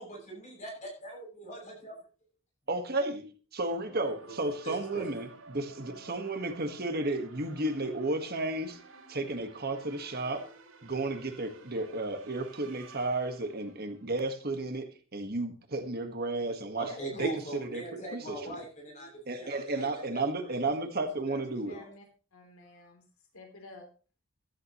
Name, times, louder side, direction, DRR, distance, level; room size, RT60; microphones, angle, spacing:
voice 1, 0.0-1.9 3.8-3.9 4.3-4.4 4.6-5.1 16.8-20.5 20.8-20.9 21.3-21.4 21.7-21.9, right 2 dB, 35° left, 0 dB, 7.9 m, -41 dB
voice 2, 2.7-5.3 5.5-5.6 5.9-8.8 9.1-10.5 10.8-16.9 17.2-18.5 19.3-21.8, right 2 dB, 45° right, 6 dB, 1.7 m, -33 dB
sound 1, 4.0-14.1, right 3 dB, 80° right, 4.9 m, -52 dB
voice 3, 16.8-17.3 21.3-22.0 22.3-23.0 23.3-23.9, left 3 dB, 80° left, 3 dB, 3.6 m, -49 dB
15.0 x 14.0 x 3.1 m, 0.37 s
head